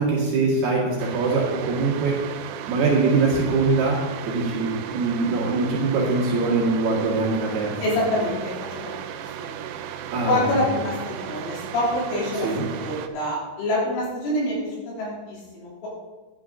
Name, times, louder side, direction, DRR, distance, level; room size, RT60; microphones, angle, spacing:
voice 1, 0.0-2.2 2.7-7.7 10.1-10.6 12.4-12.6, right 3 dB, 60° right, -4 dB, 3.4 m, -23 dB
sound 1, 1.0-13.1, right 9 dB, 80° right, 3.1 m, -35 dB
voice 2, 7.8-8.8 9.4-9.5 10.3-12.5 12.8-15.9, left 1 dB, 70° left, -4 dB, 5.5 m, -26 dB
11.5 x 11.5 x 3.8 m, 1.3 s
omnidirectional pair, 5.9 m